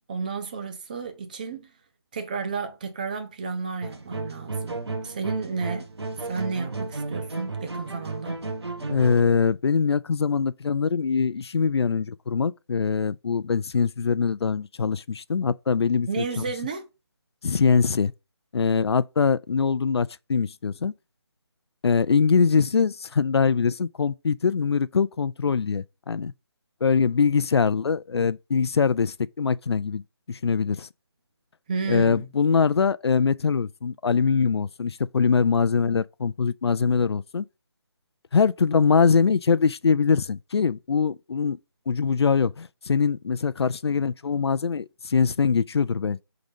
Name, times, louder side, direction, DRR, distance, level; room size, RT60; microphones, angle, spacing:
voice 1, 0.0-1.7 2.1-5.9 6.3-8.4 16.1-16.9 31.7-32.3, right 5 dB, 20° right, 0.6 m, -32 dB
sound 1, 3.8-9.2, right 3 dB, 80° right, 1.3 m, -33 dB
voice 2, 8.9-16.4 17.4-18.1 18.5-20.9 21.8-26.3 26.8-30.0 30.3-30.9 31.9-37.5 38.3-41.6 41.9-46.2, left 5 dB, 80° left, 0.4 m, -23 dB
5.1 x 3.9 x 5.2 m
figure-of-eight pair, 165°, 14 cm